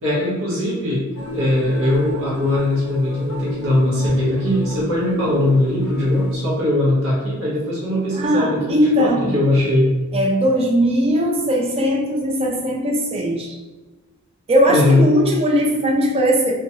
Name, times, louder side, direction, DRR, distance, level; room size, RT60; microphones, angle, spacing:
voice 1, 0.0-1.0 1.3-9.9 14.7-15.0, left 1 dB, 60° right, -7 dB, 0.8 m, -20 dB
sound 1, 1.2-6.4, right 1 dB, 70° left, 0.4 m, -33 dB
voice 2, 8.1-9.4 10.1-13.6 14.5-16.5, equal, 25° right, 1 dB, 0.3 m, -19 dB
2.9 x 2.2 x 2.7 m, 1.2 s
head